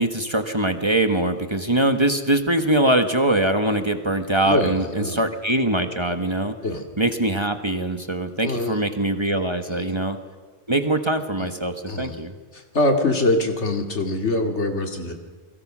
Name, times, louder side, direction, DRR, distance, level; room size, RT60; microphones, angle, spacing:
voice 1, 0.0-6.5 7.0-10.2 10.7-12.3, right 1 dB, 25° right, 7 dB, 1.3 m, -22 dB
voice 2, 4.4-5.2 6.6-6.8 8.4-8.8 9.7-9.8 11.4-11.5 11.9-12.2 12.5-15.2, left 2 dB, 75° left, 4 dB, 2.7 m, -24 dB
29.5 x 22.0 x 6.2 m, 1.5 s
omnidirectional pair, 1.2 m